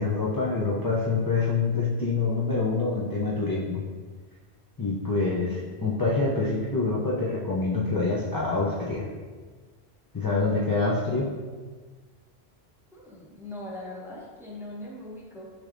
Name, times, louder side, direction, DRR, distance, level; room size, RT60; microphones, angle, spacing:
voice 1, 0.0-3.8 4.8-9.1 10.1-11.3, left 3 dB, 30° left, -6 dB, 0.4 m, -26 dB
voice 2, 12.9-15.5, left 1 dB, 5° right, -4 dB, 0.7 m, -40 dB
6.4 x 3.3 x 2.5 m, 1.4 s
omnidirectional pair, 1.1 m